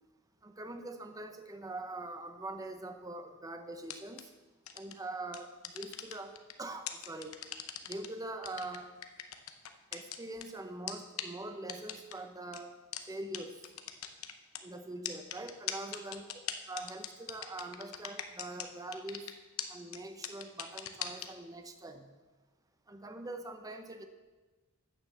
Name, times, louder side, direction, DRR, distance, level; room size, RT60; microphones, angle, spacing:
voice 1, 0.4-4.3 4.7-6.3 6.6-7.4 7.9-8.9 9.9-12.8 13.1-13.6 14.6-16.3 16.7-19.3 19.7-22.1 22.9-24.1, right 2 dB, 15° right, 7 dB, 0.8 m, -43 dB
sound 1, 3.8-4.2 4.7-4.9 5.3-6.5 6.9-8.1 8.4-10.4 10.9-11.0 11.2-11.3 11.7-12.1 12.5-12.6 12.9-13.0 13.3-13.4 13.6-14.6 15.0-18.7 18.9-19.3 19.6-19.7 19.9-20.0 20.2-21.3, left 11 dB, 80° left, 0.8 m, -39 dB
9.0 x 7.0 x 6.9 m, 1.3 s
head